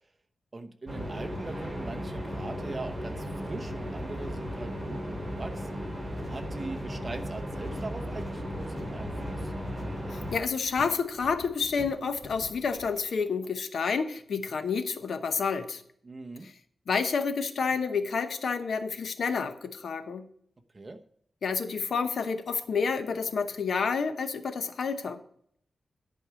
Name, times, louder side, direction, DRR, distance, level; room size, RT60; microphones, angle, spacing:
voice 1, 0.5-5.9 6.3-9.5 16.0-16.5 20.7-21.0, right 3 dB, 30° right, 5 dB, 0.9 m, -41 dB
sound 1, 0.9-10.4, equal, 10° right, 3.3 m, -36 dB
sound 2, 6.1-13.1, left 2 dB, 35° left, 1.7 m, -48 dB
voice 2, 10.1-15.8 16.4-16.5 16.9-20.3 21.4-25.2, left 5 dB, 75° left, 8 dB, 0.9 m, -29 dB
11.0 x 4.8 x 6.8 m, 0.66 s
wide cardioid pair, 120°, 0 cm